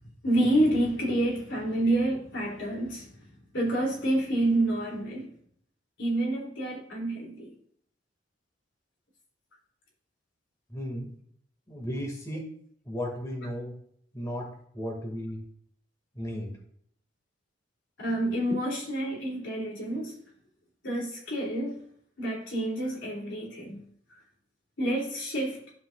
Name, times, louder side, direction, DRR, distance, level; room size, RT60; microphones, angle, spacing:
voice 1, 0.2-3.1 3.5-5.3 6.0-7.5 18.0-20.2 20.8-21.8 22.2-23.8 24.8-25.6, right 1 dB, 85° left, 3.2 m, -28 dB
voice 2, 10.7-11.1 11.7-12.4 12.9-13.7 14.1-14.5 14.7-15.4 16.1-16.5, equal, 20° left, 2.3 m, -34 dB
12.5 x 5.5 x 2.5 m
head